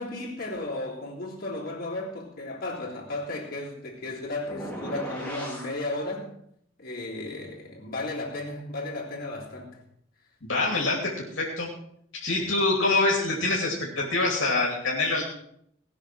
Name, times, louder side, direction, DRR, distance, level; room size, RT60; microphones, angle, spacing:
voice 1, 0.0-6.3 6.8-9.8, left 2 dB, 45° left, -4 dB, 3.3 m, -34 dB
sound 1, 4.5-5.7, equal, 5° left, 2.8 m, -36 dB
voice 2, 10.4-11.7 12.2-15.2, left 2 dB, 65° left, -2 dB, 2.8 m, -25 dB
19.0 x 6.3 x 6.1 m, 0.71 s
head